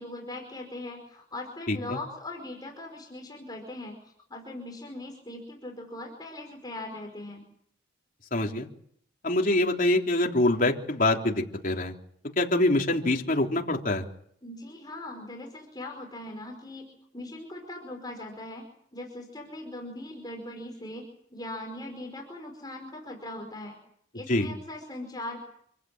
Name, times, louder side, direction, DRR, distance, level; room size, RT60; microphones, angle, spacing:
voice 1, 0.0-7.4 14.4-18.6 18.9-23.8 24.1-25.4, left 1 dB, 20° left, 2 dB, 5.1 m, -40 dB
voice 2, 8.3-8.7 9.2-11.9 12.4-14.0 24.3-24.5, left 1 dB, 45° left, 1 dB, 3.5 m, -25 dB
28.0 x 16.0 x 9.0 m, 0.68 s
head